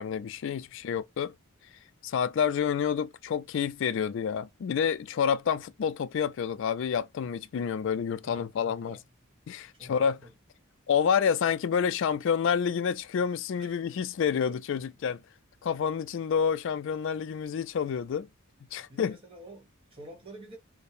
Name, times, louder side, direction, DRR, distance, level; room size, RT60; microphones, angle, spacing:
voice 1, 0.0-1.3 2.0-9.0 9.5-10.2 10.9-15.2 15.6-18.3 18.7-19.2, left 7 dB, 60° left, 0.3 m, -28 dB
voice 2, 8.2-9.0 9.8-10.3 13.6-14.0 14.3-14.8 18.8-20.6, right 1 dB, 25° right, 1.3 m, -49 dB
4.3 x 2.1 x 3.2 m
head